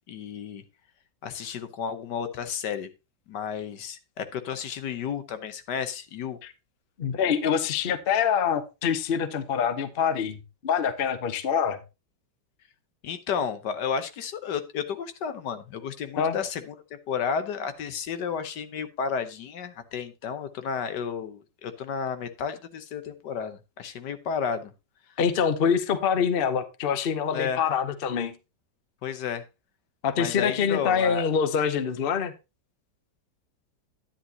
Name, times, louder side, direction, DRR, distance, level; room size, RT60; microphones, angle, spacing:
voice 1, 0.1-0.6 1.2-2.9 3.3-6.4 13.0-16.8 17.1-24.7 27.3-27.6 29.0-29.4 30.2-31.2, left 7 dB, 65° left, 1.5 m, -32 dB
voice 2, 7.0-10.4 10.6-11.8 16.2-16.4 25.2-28.4 30.0-32.3, left 7 dB, 50° left, 0.6 m, -25 dB
10.5 x 10.0 x 2.8 m
omnidirectional pair, 2.0 m